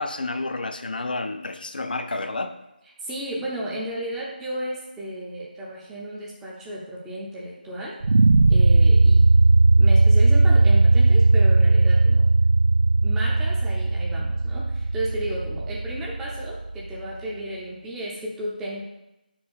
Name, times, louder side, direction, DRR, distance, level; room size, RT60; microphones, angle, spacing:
voice 1, 0.0-2.5, left 2 dB, 65° left, 8 dB, 0.5 m, -30 dB
voice 2, 3.0-8.0 8.5-9.2 9.8-12.3 13.0-18.8, right 1 dB, 5° right, -4 dB, 0.5 m, -33 dB
sound 1, 8.0-17.0, right 2 dB, 65° right, 0.3 m, -18 dB
4.9 x 4.4 x 5.6 m, 0.92 s
figure-of-eight pair, 160°, 5 cm